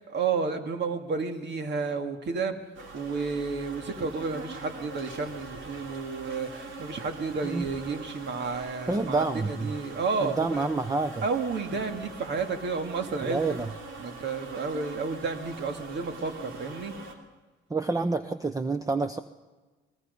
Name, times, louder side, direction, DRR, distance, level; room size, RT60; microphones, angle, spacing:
voice 1, 0.0-2.5 2.9-10.7 11.2-13.6 14.0-16.9, right 4 dB, 60° right, 6 dB, 2.3 m, -31 dB
sound 1, 2.7-17.1, right 2 dB, 80° right, 3.1 m, -42 dB
voice 2, 8.9-9.7 10.2-11.2 13.2-13.7 17.7-19.2, right 3 dB, 15° right, 10 dB, 0.8 m, -28 dB
23.0 x 20.5 x 5.4 m, 1.3 s
cardioid pair, 90°, 20 cm